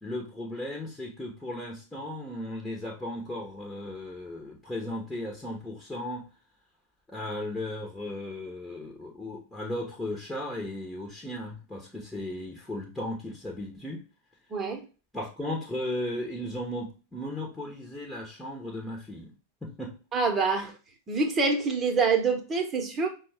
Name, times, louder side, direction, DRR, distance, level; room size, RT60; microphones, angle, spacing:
voice 1, 0.0-6.3 7.1-14.0 15.1-19.3 19.6-20.0, left 1 dB, 5° left, 1.0 m, -36 dB
voice 2, 14.5-14.8 20.1-20.7 21.1-23.1, right 4 dB, 20° right, 1.0 m, -26 dB
5.6 x 2.3 x 3.4 m
figure-of-eight pair, 90°, 0 cm